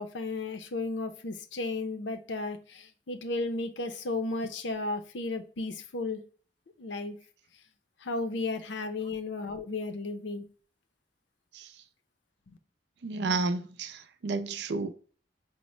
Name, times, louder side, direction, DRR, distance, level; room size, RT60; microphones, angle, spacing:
voice 1, 0.0-6.2 6.8-7.2 8.0-10.5, left 3 dB, 85° left, 0.6 m, -34 dB
voice 2, 13.0-14.9, right 3 dB, 70° right, 0.4 m, -31 dB
5.1 x 2.1 x 3.0 m
head